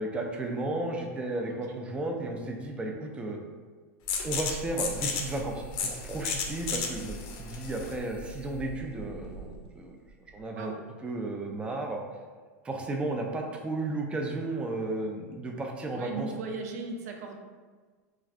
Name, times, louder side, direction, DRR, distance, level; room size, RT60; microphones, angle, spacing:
voice 1, 0.0-3.4 4.2-9.9 10.3-10.7 11.0-12.0 12.6-16.3, right 2 dB, 10° right, 1 dB, 0.3 m, -33 dB
sound 1, 4.1-9.6, left 5 dB, 50° left, 0.5 m, -34 dB
voice 2, 15.9-17.4, right 4 dB, 80° right, 3 dB, 0.4 m, -37 dB
3.1 x 2.4 x 2.4 m, 1.5 s
hypercardioid pair, 120°, 9 cm